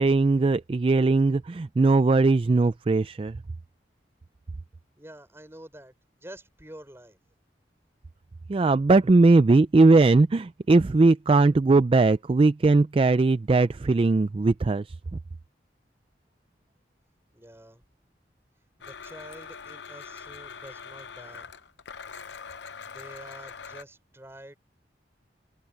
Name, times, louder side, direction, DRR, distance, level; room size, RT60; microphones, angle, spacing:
voice 1, 0.0-3.4 8.5-14.8, right 3 dB, 30° right, 0.3 m, -20 dB
voice 2, 5.0-7.2 17.3-17.8 18.8-21.5 22.8-24.6, right 1 dB, 15° right, 5.6 m, -47 dB
Domestic sounds home sounds, 18.8-23.8, left 6 dB, 90° left, 0.8 m, -43 dB
head